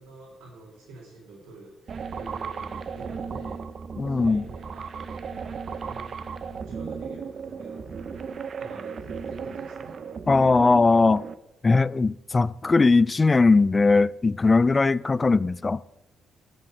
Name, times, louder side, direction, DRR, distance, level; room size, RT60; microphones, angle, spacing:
voice 1, 0.0-3.6 4.0-5.2 5.8-6.1 6.6-10.0 14.7-14.9, right 2 dB, 90° right, 2.4 m, -47 dB
sound 1, 1.9-11.3, right 6 dB, 50° right, 0.6 m, -35 dB
voice 2, 4.0-4.4 10.3-11.2 11.6-15.8, left 3 dB, 25° left, 0.3 m, -20 dB
11.0 x 5.4 x 7.4 m
cardioid pair, 90°, 0 cm